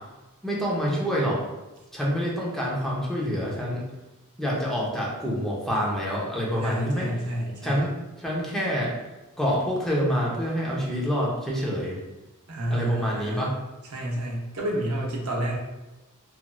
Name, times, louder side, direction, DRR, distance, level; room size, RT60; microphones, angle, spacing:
voice 1, 0.4-1.4 1.9-3.8 4.4-7.1 7.6-7.9 8.2-8.9 9.4-12.0 12.7-13.5, equal, ahead, -5 dB, 0.6 m, -27 dB
voice 2, 6.6-7.9 12.5-13.5 13.9-15.6, right 1 dB, 70° right, -2 dB, 0.7 m, -29 dB
3.0 x 2.5 x 2.2 m, 1.1 s
head